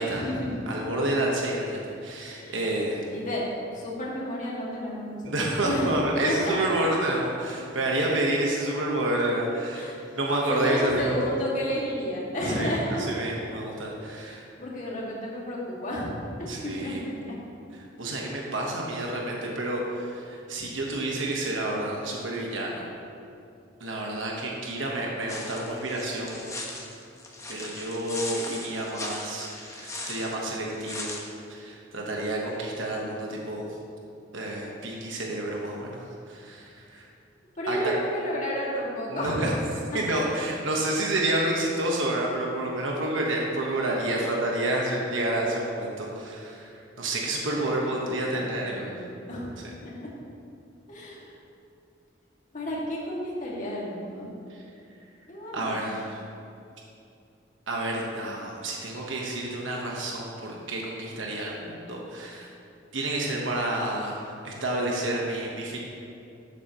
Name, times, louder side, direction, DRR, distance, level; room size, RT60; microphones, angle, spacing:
voice 1, 0.0-0.7 2.2-5.3 5.6-5.9 6.2-6.5 9.7-10.0 10.5-13.0 14.0-14.2 14.6-17.4 37.6-39.5 39.9-40.0 44.1-44.3 47.5-47.9 48.3-49.5 49.8-50.1 50.9-51.3 52.5-54.3 55.3-55.8, equal, 45° left, -5 dB, 2.1 m, -32 dB
voice 2, 0.7-3.0 5.2-11.3 12.6-12.7 13.1-14.4 16.5-17.0 18.0-22.8 23.8-26.4 27.5-31.1 31.5-33.6 34.3-37.0 37.7-38.0 39.1-39.5 39.9-46.7 47.0-48.9 55.5-56.2 57.7-62.5 62.9-65.8, right 1 dB, 90° right, -2 dB, 1.2 m, -29 dB
sound 1, 25.3-31.2, left 2 dB, 15° left, 1.0 m, -38 dB
12.0 x 8.2 x 3.0 m, 2.6 s
head